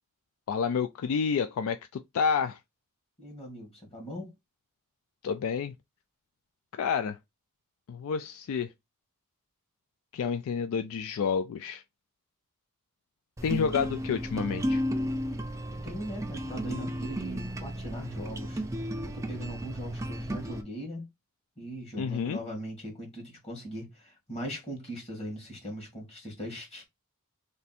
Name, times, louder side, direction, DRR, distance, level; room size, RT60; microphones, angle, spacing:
voice 1, 0.5-2.6 5.2-5.7 6.8-7.2 7.9-8.7 10.1-11.8 13.4-14.8 22.0-22.4, left 6 dB, 65° left, 0.3 m, -29 dB
voice 2, 3.2-4.3 15.8-18.6 19.0-21.1 21.6-26.8, equal, 25° left, 1.8 m, -40 dB
sound 1, 13.4-20.6, equal, 15° right, 0.4 m, -33 dB
3.3 x 2.6 x 4.1 m
head